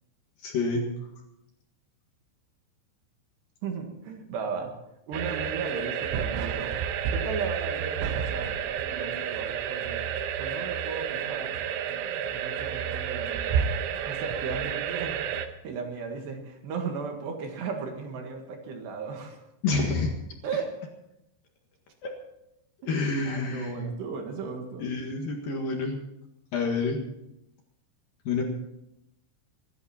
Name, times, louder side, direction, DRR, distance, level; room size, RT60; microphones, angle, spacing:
voice 1, 0.4-0.9 19.6-20.1 22.0-22.1 22.8-23.9 24.8-26.0 26.5-27.0 28.2-28.4, left 3 dB, 55° left, 1 dB, 3.0 m, -28 dB
voice 2, 3.6-4.7 5.1-6.8 7.1-10.0 10.4-11.6 12.3-13.7 14.1-15.2 15.6-19.4 20.4-20.7 22.8-22.9 23.3-24.9, right 5 dB, 65° right, 3 dB, 3.7 m, -35 dB
sound 1, 5.1-15.5, right 8 dB, 90° right, 3.5 m, -30 dB
25.5 x 11.0 x 4.4 m, 0.86 s
omnidirectional pair, 5.5 m